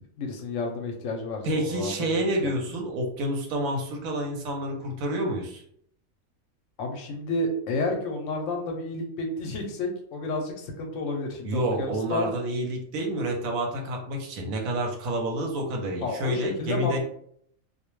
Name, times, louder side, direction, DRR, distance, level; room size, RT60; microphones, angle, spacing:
voice 1, 0.2-2.6 6.8-12.3 16.0-17.0, left 2 dB, 70° left, 2 dB, 0.9 m, -31 dB
voice 2, 1.4-5.6 11.4-17.0, right 1 dB, 80° right, 2 dB, 1.1 m, -28 dB
2.4 x 2.1 x 3.0 m, 0.65 s
omnidirectional pair, 1.4 m